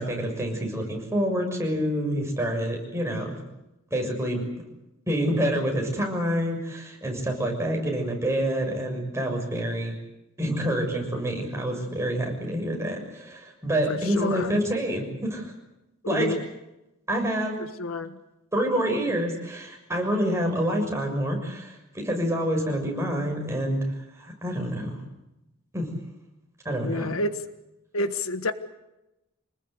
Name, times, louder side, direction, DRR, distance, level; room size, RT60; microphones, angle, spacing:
voice 1, 0.0-3.3 3.9-4.4 5.1-10.0 10.4-15.5 16.1-16.3 17.1-17.6 18.5-23.8 24.1-25.0 25.7-25.9 26.6-27.2, equal, 15° right, 1 dB, 6.7 m, -27 dB
voice 2, 13.9-14.5 16.0-16.4 17.8-18.2 26.8-27.4 27.9-28.5, left 2 dB, 85° left, 10 dB, 1.5 m, -29 dB
27.0 x 20.0 x 8.2 m, 0.94 s
head